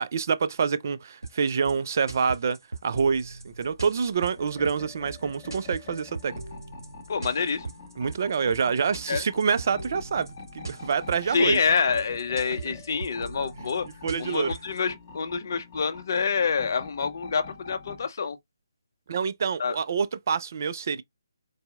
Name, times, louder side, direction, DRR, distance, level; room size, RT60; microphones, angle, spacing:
voice 1, 0.0-6.4 8.0-11.6 12.7-12.8 14.0-14.5 19.1-21.0, right 6 dB, 50° right, 0.4 m, -27 dB
sound 1, 1.2-14.8, right 3 dB, 80° right, 1.4 m, -40 dB
sound 2, 4.4-18.1, left 4 dB, 30° left, 1.3 m, -46 dB
voice 2, 7.1-7.6 9.1-9.2 11.3-13.9 14.2-18.4 19.6-19.8, left 5 dB, 50° left, 0.6 m, -27 dB
4.0 x 2.7 x 2.3 m
figure-of-eight pair, 150°, 2 cm